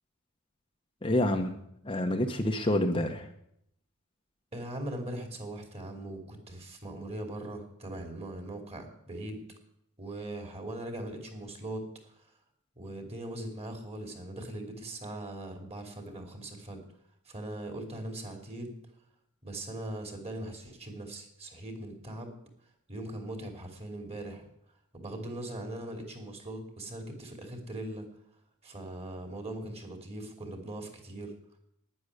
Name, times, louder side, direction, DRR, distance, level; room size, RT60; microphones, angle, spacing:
voice 1, 1.0-3.3, left 1 dB, 25° left, 4 dB, 1.0 m, -28 dB
voice 2, 4.5-9.4 10.0-12.2 12.8-16.8 17.3-18.8 19.4-22.3 22.9-24.5 24.9-28.1 28.6-31.3, right 1 dB, 30° right, 4 dB, 2.9 m, -40 dB
11.5 x 10.5 x 9.7 m, 0.75 s
head